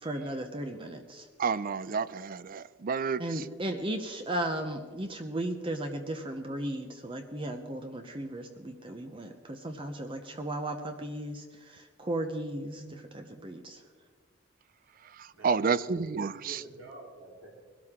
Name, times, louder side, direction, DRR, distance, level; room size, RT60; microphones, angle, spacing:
voice 1, 0.0-1.3 3.2-13.8, right 1 dB, 25° right, 6 dB, 0.8 m, -36 dB
voice 2, 1.4-3.5 12.8-13.2 15.0-16.6, right 5 dB, 45° right, 17 dB, 0.4 m, -31 dB
voice 3, 15.3-17.5, right 2 dB, 85° right, -3 dB, 3.9 m, -49 dB
21.0 x 12.5 x 3.7 m, 1.5 s
head